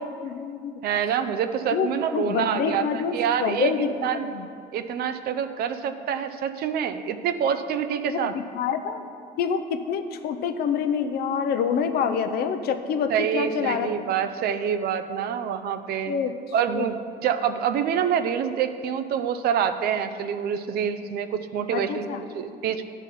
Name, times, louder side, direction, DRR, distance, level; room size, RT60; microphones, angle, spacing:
voice 1, 0.2-0.7 1.7-4.4 8.1-9.0 9.4-13.9 16.1-16.3 16.7-16.9 21.7-22.2, left 6 dB, 70° left, 8 dB, 0.6 m, -27 dB
voice 2, 0.8-3.7 4.0-4.3 4.7-8.3 13.1-16.1 16.5-22.1 22.3-22.8, right 8 dB, 65° right, 9 dB, 0.5 m, -26 dB
10.5 x 4.0 x 5.6 m, 2.4 s
cardioid pair, 110°, 17 cm